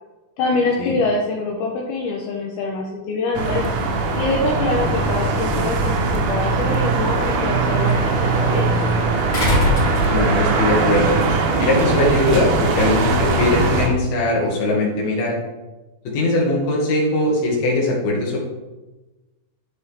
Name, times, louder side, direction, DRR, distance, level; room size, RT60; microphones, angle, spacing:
voice 1, 0.4-3.7 4.2-8.7, left 3 dB, 80° left, -1 dB, 2.2 m, -24 dB
sound 1, 3.4-13.9, right 3 dB, 85° right, 3.8 m, -20 dB
sound 2, 7.1-12.3, right 2 dB, 65° right, 1.2 m, -36 dB
sound 3, 9.3-10.6 12.0-12.1, left 1 dB, 30° left, 3.0 m, -21 dB
voice 2, 10.1-11.2 11.6-15.3 16.1-18.4, left 2 dB, 60° left, -2 dB, 3.4 m, -20 dB
12.5 x 5.4 x 3.6 m, 1.1 s
omnidirectional pair, 5.6 m